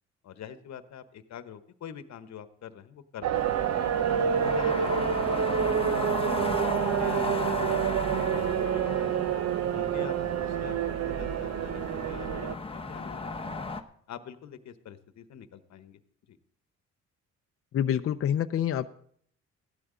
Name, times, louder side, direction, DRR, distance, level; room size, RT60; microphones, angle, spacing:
voice 1, 0.2-3.6 4.1-6.2 6.6-6.7 7.0-9.3 9.7-13.7 14.1-16.0 16.3-16.4, left 9 dB, 65° left, 11 dB, 1.1 m, -45 dB
sound 1, 3.2-12.5, right 8 dB, 60° right, 0.7 m, -28 dB
sound 2, 3.3-13.8, left 3 dB, 20° left, 0.9 m, -36 dB
voice 2, 17.7-18.9, left 9 dB, 50° left, 9 dB, 0.6 m, -27 dB
15.5 x 12.0 x 3.8 m, 0.62 s
cardioid pair, 90°, 30 cm